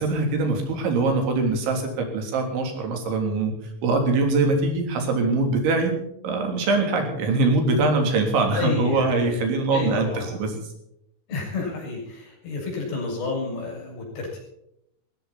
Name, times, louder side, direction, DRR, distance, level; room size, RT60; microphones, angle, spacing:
voice 1, 0.0-3.5 3.8-5.9 6.2-10.5, right 3 dB, 80° right, 3 dB, 5.7 m, -23 dB
voice 2, 8.5-9.4 9.7-10.3 11.3-14.4, left 4 dB, 65° left, -1 dB, 8.7 m, -30 dB
21.0 x 16.0 x 4.3 m, 0.78 s
omnidirectional pair, 5.3 m